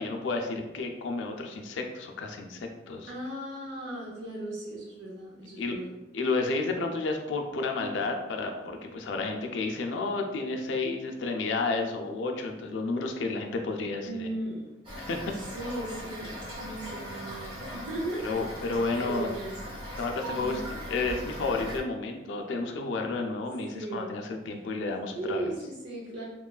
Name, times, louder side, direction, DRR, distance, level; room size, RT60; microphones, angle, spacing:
voice 1, 0.0-3.1 5.6-5.7 6.1-14.3 15.0-15.2 18.2-19.3 20.0-20.6 20.9-25.5, left 3 dB, 80° left, 3 dB, 0.4 m, -31 dB
voice 2, 3.1-5.9 14.1-14.7 15.3-16.3 16.6-18.3 19.0-19.8 20.3-20.7 23.7-24.2 25.1-26.2, right 2 dB, 70° right, -4 dB, 0.5 m, -37 dB
Toilet flush / Fill (with liquid), 14.8-21.8, equal, 30° right, 0.7 m, -39 dB
3.0 x 2.3 x 2.2 m, 1.0 s
head